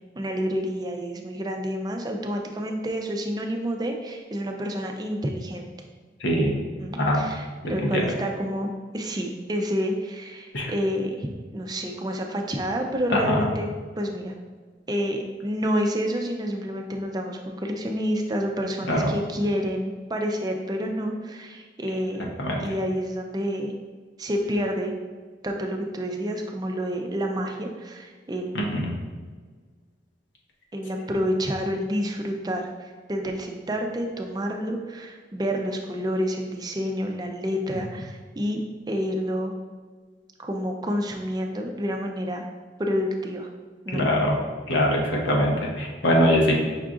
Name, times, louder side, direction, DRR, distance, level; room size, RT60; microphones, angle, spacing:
voice 1, 0.2-5.7 6.8-14.3 14.9-22.3 22.6-23.7 24.2-24.9 25.4-28.7 30.7-39.5 40.4-42.4 42.8-43.5 43.8-44.1, equal, 20° right, 2 dB, 0.4 m, -29 dB
voice 2, 6.2-6.5 7.1-7.2 7.9-8.0 10.5-10.7 13.3-13.4 18.9-19.1 22.4-22.5 28.5-28.9 43.9-44.3 44.7-46.6, equal, 80° left, -1 dB, 0.8 m, -22 dB
5.6 x 2.4 x 3.6 m, 1.5 s
head